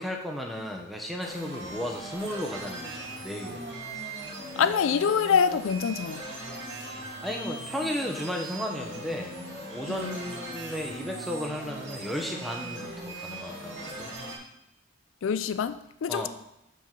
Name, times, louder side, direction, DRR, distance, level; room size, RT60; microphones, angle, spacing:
voice 1, 0.0-3.7 7.2-9.4 9.7-14.2 16.1-16.3, equal, ahead, 0.9 m, -34 dB
sound 1, 1.2-14.4, right 1 dB, 65° right, 2.0 m, -39 dB
voice 2, 4.6-6.2 9.9-10.2 15.2-16.3, left 6 dB, 85° left, 0.4 m, -25 dB
5.7 x 5.4 x 5.9 m
head